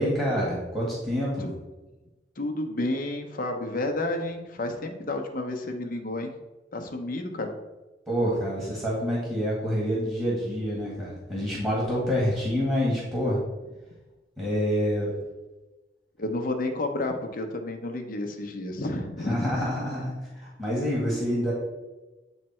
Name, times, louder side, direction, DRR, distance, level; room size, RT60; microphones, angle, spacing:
voice 1, 0.0-1.6 8.1-13.4 14.4-15.2 19.2-21.5, equal, 10° right, -6 dB, 1.9 m, -27 dB
voice 2, 2.4-6.3 6.7-7.5 16.2-19.6, left 2 dB, 50° left, 5 dB, 0.8 m, -31 dB
8.7 x 3.3 x 4.3 m, 1.1 s
head